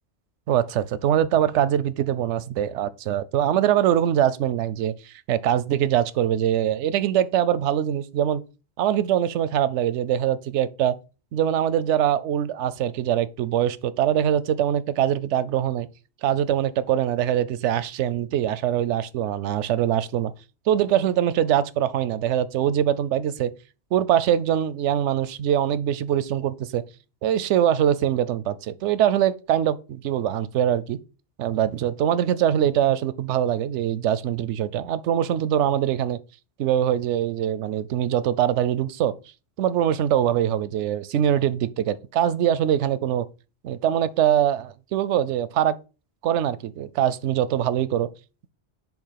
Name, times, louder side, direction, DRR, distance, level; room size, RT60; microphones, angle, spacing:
voice 1, 0.5-8.4 8.8-11.0 11.3-15.9 16.2-20.3 20.7-23.5 23.9-26.8 27.2-31.0 31.4-36.2 36.6-39.1 39.6-43.3 43.6-45.8 46.2-48.1, right 10 dB, 85° right, 0.9 m, -23 dB
7.1 x 2.9 x 5.7 m
omnidirectional pair, 1.2 m